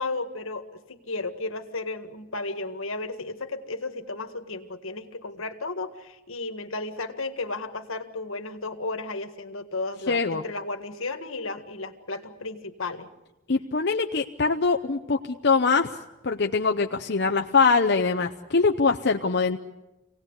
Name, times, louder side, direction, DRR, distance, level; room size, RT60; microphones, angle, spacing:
voice 1, 0.0-13.1, left 3 dB, 75° left, 7 dB, 1.8 m, -34 dB
voice 2, 10.1-10.4 13.5-15.9 16.2-19.6, left 4 dB, 50° left, 4 dB, 0.7 m, -23 dB
26.5 x 18.5 x 8.2 m, 1.0 s
head